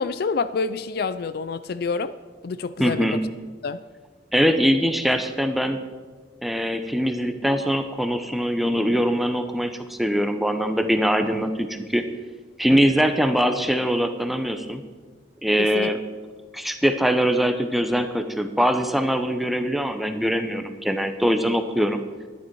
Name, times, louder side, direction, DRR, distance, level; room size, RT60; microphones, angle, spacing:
voice 1, 0.0-2.1 2.4-3.2 3.6-3.8 15.6-15.9, left 4 dB, 60° left, 14 dB, 0.4 m, -27 dB
voice 2, 2.8-3.2 4.3-5.8 6.4-12.0 12.6-14.8 15.4-16.0 16.5-22.0, equal, ahead, 7 dB, 0.7 m, -22 dB
11.0 x 10.5 x 4.6 m, 1.4 s
head